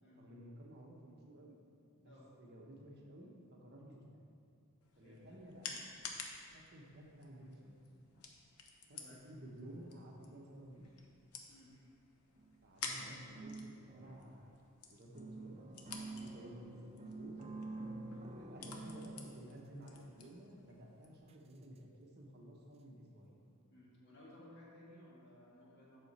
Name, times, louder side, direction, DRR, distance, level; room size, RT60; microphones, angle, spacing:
voice 1, 0.2-1.6 2.0-4.2 5.0-5.8 6.5-7.8 8.9-10.9 12.6-15.6 15.9-16.1 16.3-16.7 17.0-17.4 18.4-23.3, right 1 dB, 50° right, -1 dB, 1.0 m, -54 dB
sound 1, 4.8-21.2, left 4 dB, 85° left, 0.8 m, -52 dB
voice 2, 4.9-5.4 8.9-9.2 11.5-11.7 16.1-16.4 18.1-18.8 23.7-26.0, left 1 dB, 55° left, -5 dB, 1.8 m, -59 dB
sound 2, 12.4-12.6 13.0-14.7 15.1-20.3 21.3-21.4 21.8-21.9, right 2 dB, 25° right, 0.3 m, -49 dB
7.7 x 5.8 x 4.2 m, 2.4 s
head